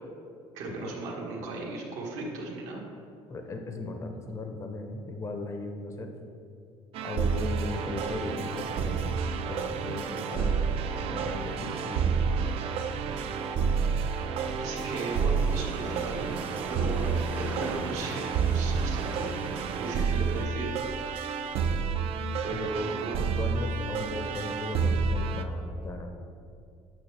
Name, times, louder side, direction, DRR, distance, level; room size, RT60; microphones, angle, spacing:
voice 1, 0.5-2.8 14.6-20.7 22.4-23.2, right 3 dB, 85° right, -3 dB, 1.5 m, -36 dB
voice 2, 3.3-6.1 7.0-9.2 9.5-12.6 22.5-22.7 23.2-26.1, left 2 dB, 25° left, 5 dB, 0.6 m, -37 dB
sound 1, 6.9-25.4, right 5 dB, 60° right, 0.4 m, -29 dB
sound 2, 15.0-20.5, right 2 dB, 20° right, 0.6 m, -42 dB
9.0 x 5.8 x 3.3 m, 2.4 s
cardioid pair, 125°, 11 cm